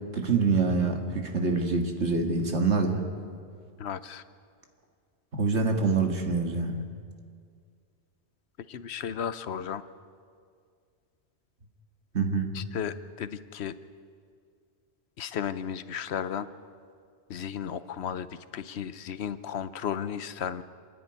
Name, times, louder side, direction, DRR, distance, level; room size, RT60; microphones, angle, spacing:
voice 1, 0.1-3.0 5.3-6.8 12.1-12.5, right 4 dB, 85° right, 4 dB, 2.1 m, -26 dB
voice 2, 3.8-4.2 8.7-9.8 12.5-13.8 15.2-16.5 17.3-20.6, left 8 dB, 75° left, 14 dB, 1.0 m, -34 dB
27.0 x 10.0 x 9.8 m, 2.2 s
omnidirectional pair, 1.1 m